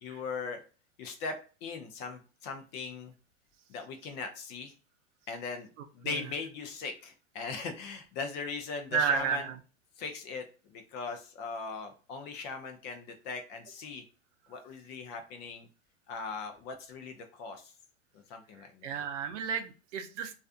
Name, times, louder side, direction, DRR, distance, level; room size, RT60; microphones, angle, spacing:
voice 1, 0.0-0.6 1.0-3.1 3.7-4.7 5.3-5.7 5.9-9.5 10.0-14.0 14.5-15.7 16.1-17.7 18.1-18.9, left 4 dB, 30° left, 6 dB, 0.4 m, -39 dB
voice 2, 8.9-9.5 18.8-20.3, right 7 dB, 75° right, 8 dB, 0.6 m, -32 dB
2.4 x 2.4 x 2.3 m, 0.36 s
hypercardioid pair, 120°, 37 cm